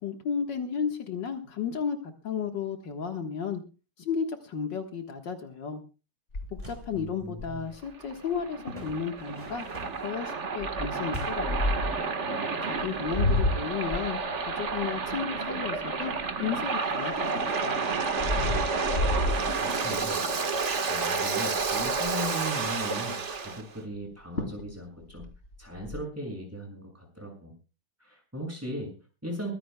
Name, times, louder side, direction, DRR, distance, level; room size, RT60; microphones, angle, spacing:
voice 1, 0.0-3.6 4.0-5.8 6.5-9.7 10.0-11.6 12.6-16.1 16.4-17.9, left 6 dB, 70° left, 5 dB, 2.2 m, -33 dB
sound 1, 6.3-7.8 8.3-8.4 8.7-8.9 9.5-9.8 10.6-12.1 12.7-16.6 17.1-20.2 20.6-20.9 21.2-21.3 21.5-22.3 24.0-24.1 24.4-24.7 25.0-26.0, left 1 dB, 35° left, 2.8 m, -31 dB
sound 2, 6.4-6.9 8.7-10.1 11.1-11.6, left 1 dB, 20° right, 4.6 m, -42 dB
voice 2, 6.9-7.7 19.0-20.2 20.5-25.2 25.6-27.5 28.0-29.5, right 1 dB, 5° right, 0 dB, 6.4 m, -38 dB
Waves surf, 7.8-23.6, right 4 dB, 40° right, 1.7 m, -30 dB
23.5 x 15.5 x 2.3 m, 0.33 s
omnidirectional pair, 2.0 m